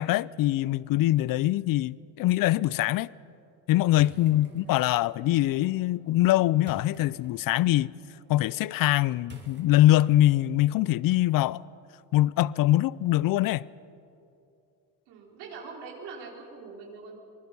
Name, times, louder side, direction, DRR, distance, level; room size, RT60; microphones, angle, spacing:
voice 1, 0.0-3.1 3.7-7.9 8.3-11.6 12.1-13.7, left 15 dB, 60° left, 0.5 m, -23 dB
sound 1, 3.9-10.4, right 3 dB, 25° right, 3.0 m, -54 dB
voice 2, 4.3-4.7 15.1-17.1, right 4 dB, 85° right, 4.3 m, -43 dB
25.5 x 20.0 x 5.5 m
cardioid pair, 95°, 39 cm